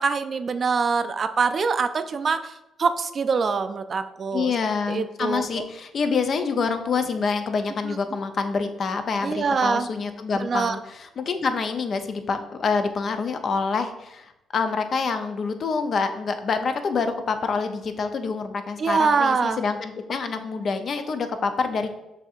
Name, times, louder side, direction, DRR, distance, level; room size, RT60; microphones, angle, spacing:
voice 1, 0.0-2.5 2.8-4.5 4.9-5.4 9.2-9.9 10.4-10.8 18.8-19.6, right 5 dB, 45° right, 9 dB, 0.3 m, -24 dB
voice 2, 4.3-21.9, left 5 dB, 50° left, 8 dB, 0.4 m, -26 dB
6.5 x 2.7 x 2.4 m, 0.92 s
cardioid pair, 90°, 0 cm